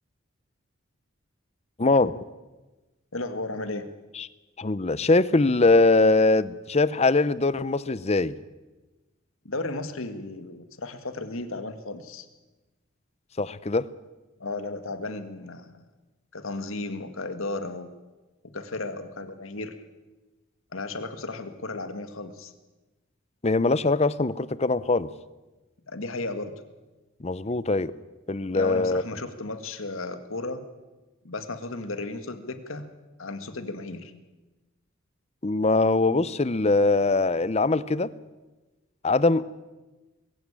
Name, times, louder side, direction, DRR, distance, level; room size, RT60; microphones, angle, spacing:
voice 1, 1.8-2.2 4.1-4.3 4.6-8.4 13.4-13.9 23.4-25.1 27.2-27.9 28.3-29.0 35.4-38.1 39.0-39.5, left 3 dB, 30° left, 17 dB, 0.7 m, -22 dB
voice 2, 3.1-3.9 9.5-12.3 14.4-15.7 16.3-17.9 18.5-19.8 20.7-22.5 25.9-26.5 28.5-30.6 31.2-32.9 33.2-34.1, left 2 dB, 75° left, 9 dB, 1.9 m, -34 dB
21.5 x 15.5 x 8.8 m, 1.1 s
head